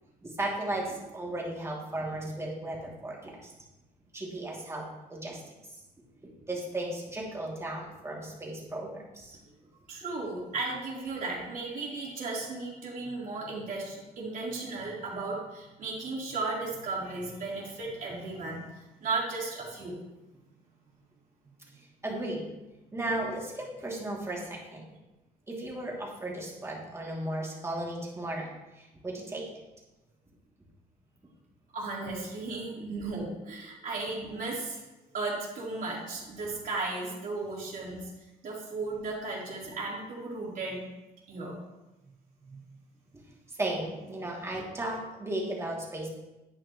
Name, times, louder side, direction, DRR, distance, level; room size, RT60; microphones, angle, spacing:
voice 1, 0.2-3.5 4.1-4.8 5.1-5.4 6.5-9.4 22.0-22.4 22.9-24.9 25.5-29.5 32.8-32.9 39.6-39.7 43.5-46.1, right 1 dB, 15° right, -3 dB, 2.8 m, -35 dB
voice 2, 9.9-18.6 19.0-19.9 31.7-34.8 35.1-38.1 38.4-40.9 41.3-41.5 42.4-42.6, right 3 dB, 55° right, -5 dB, 3.9 m, -35 dB
11.0 x 8.9 x 3.2 m, 1.0 s
cardioid pair, 110°, 17 cm